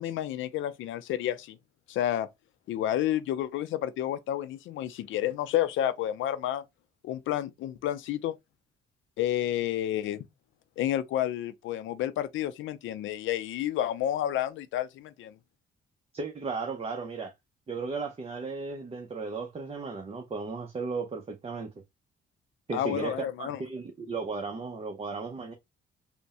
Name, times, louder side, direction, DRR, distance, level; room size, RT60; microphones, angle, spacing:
voice 1, 0.0-1.6 1.9-2.3 2.7-6.6 7.0-8.4 9.2-10.3 10.8-15.3 22.7-23.6, left 12 dB, 80° left, 0.5 m, -30 dB
voice 2, 16.1-17.3 17.7-21.7 22.7-25.5, right 4 dB, 30° right, 0.7 m, -35 dB
3.4 x 2.1 x 4.1 m
cardioid pair, 90°, 20 cm